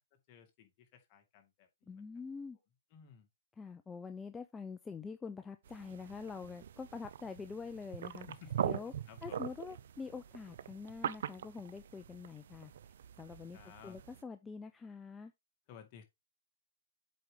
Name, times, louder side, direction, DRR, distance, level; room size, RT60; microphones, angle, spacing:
voice 1, 0.0-2.0 2.9-3.3 8.2-9.5 13.5-14.0 15.7-16.0, left 7 dB, 40° left, 2.2 m, -57 dB
voice 2, 1.9-2.6 3.6-8.3 8.6-8.9 9.2-12.7 13.2-15.3, left 5 dB, 10° left, 0.5 m, -45 dB
sound 1, 5.7-14.2, right 9 dB, 65° right, 0.6 m, -42 dB
7.7 x 4.8 x 3.7 m
hypercardioid pair, 140°, 0 cm